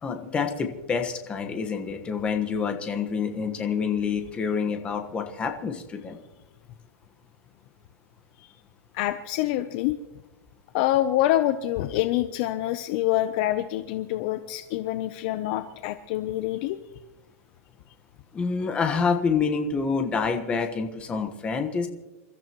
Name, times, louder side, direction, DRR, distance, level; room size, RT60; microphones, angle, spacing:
voice 1, 0.0-6.2 18.3-21.9, left 5 dB, 15° left, 5 dB, 1.3 m, -27 dB
voice 2, 8.9-10.0 10.7-16.8, left 14 dB, 35° left, 11 dB, 0.6 m, -26 dB
28.5 x 13.5 x 3.0 m, 1.1 s
supercardioid pair, 170°, 8 cm